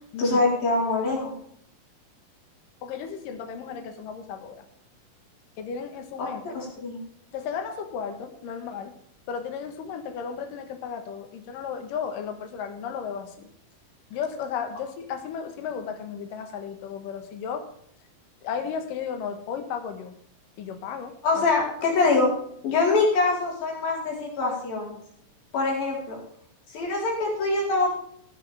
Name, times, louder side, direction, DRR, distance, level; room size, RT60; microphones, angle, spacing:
voice 1, 0.2-1.3 6.4-7.0 21.2-22.3 22.6-25.0 25.5-26.2 26.7-27.9, left 3 dB, 90° left, -2 dB, 6.1 m, -24 dB
voice 2, 2.8-4.6 5.6-6.6 7.3-8.9 9.3-13.5 14.1-17.7 18.4-20.2 20.6-21.4, left 7 dB, 75° left, 6 dB, 2.9 m, -34 dB
15.0 x 10.0 x 3.5 m, 0.67 s
omnidirectional pair, 4.0 m